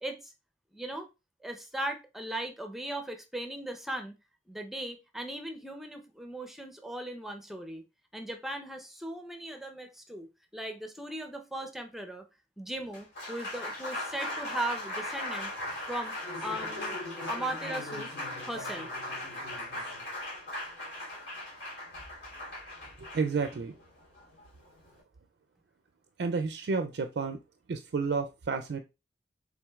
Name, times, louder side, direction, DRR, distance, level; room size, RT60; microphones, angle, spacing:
voice 1, 0.0-0.3 0.7-1.1 1.4-4.1 4.5-7.8 8.1-10.3 10.5-12.2 12.6-15.5 15.9-16.1 16.4-16.9 17.3-18.1 18.4-18.9, right 1 dB, ahead, 0.7 m, -38 dB
Applause, 12.8-25.0, left 1 dB, 90° left, 2.8 m, -38 dB
voice 2, 23.1-23.8 26.2-27.4 27.7-28.8, right 4 dB, 65° right, 0.4 m, -31 dB
5.9 x 3.7 x 2.3 m
head